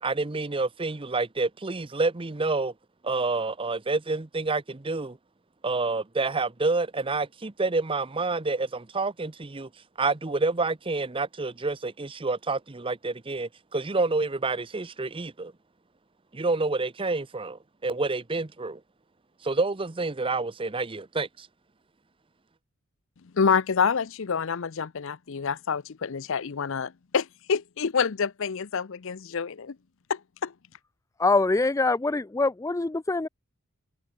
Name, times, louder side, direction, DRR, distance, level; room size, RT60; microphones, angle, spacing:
voice 1, 0.0-2.7 3.0-5.2 5.6-9.7 10.0-15.5 16.3-18.8 19.4-21.5, right 3 dB, 25° right, 0.7 m, -28 dB
voice 2, 23.3-29.8 30.1-30.5, left 6 dB, 60° left, 0.6 m, -27 dB
voice 3, 31.2-33.3, left 3 dB, 15° left, 0.3 m, -24 dB
head